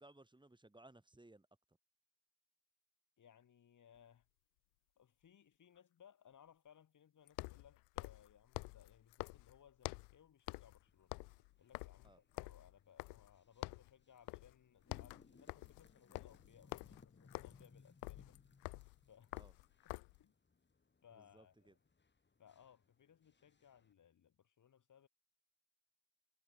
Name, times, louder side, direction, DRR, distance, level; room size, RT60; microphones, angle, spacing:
voice 1, 0.0-1.5 12.0-12.2 19.3-19.5 21.1-21.8, right 2 dB, 10° right, 6.2 m, -62 dB
voice 2, 3.2-4.3 5.0-11.1 11.6-18.4 19.1-19.3 20.2-20.3 21.0-21.8 22.4-25.1, left 8 dB, 50° left, 3.3 m, -65 dB
sound 1, 4.0-4.1 7.3-10.2 10.5-10.8 11.0-13.4 13.6-13.9 14.3-14.6 14.8-20.2, left 29 dB, 80° left, 0.8 m, -48 dB
sound 2, 10.7-23.9, left 4 dB, 30° left, 4.3 m, -68 dB
supercardioid pair, 60°, 38 cm